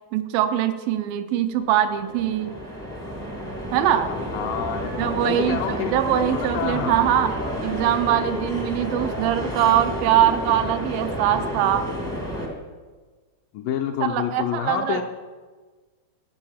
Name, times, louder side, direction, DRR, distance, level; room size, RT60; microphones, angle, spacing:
voice 1, 0.1-2.5 3.7-4.1 5.0-7.3 7.6-11.9 14.0-15.0, right 11 dB, 80° right, 9 dB, 2.2 m, -22 dB
sound 1, 1.6-12.5, equal, 20° right, 0.5 m, -30 dB
voice 2, 4.3-5.9 6.3-7.1 13.5-15.0, left 8 dB, 80° left, 5 dB, 2.0 m, -28 dB
11.5 x 8.0 x 5.6 m, 1.4 s
omnidirectional pair, 4.3 m